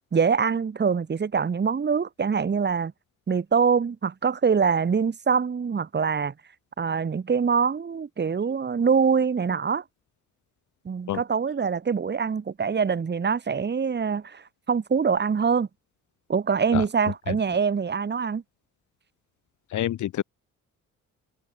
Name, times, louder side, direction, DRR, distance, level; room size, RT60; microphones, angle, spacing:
voice 1, 0.1-2.9 3.3-6.3 6.8-9.8 10.9-14.4 14.7-15.7 16.3-18.4, right 6 dB, 35° right, 2.3 m, -24 dB
voice 2, 19.7-20.2, left 12 dB, 75° left, 3.3 m, -27 dB
cardioid pair, 90°, 30 cm